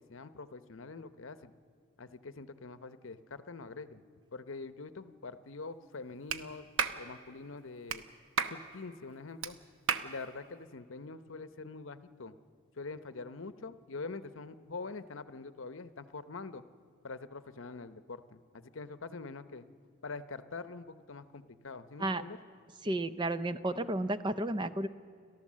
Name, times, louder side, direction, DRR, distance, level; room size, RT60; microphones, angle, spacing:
voice 1, 0.0-1.5 2.0-4.0 4.3-6.7 7.0-8.1 8.5-9.6 10.0-12.3 12.8-16.6 17.0-19.7 20.0-22.4, left 3 dB, 65° left, 12 dB, 0.8 m, -44 dB
Clapping, 6.3-6.4 6.8-7.0 7.9-8.0 8.4-8.6 9.4-9.5 9.9-10.1, right 6 dB, 70° right, 1.0 m, -31 dB
voice 2, 22.8-24.9, right 1 dB, 20° right, 11 dB, 0.6 m, -32 dB
30.0 x 13.0 x 7.4 m, 2.4 s
head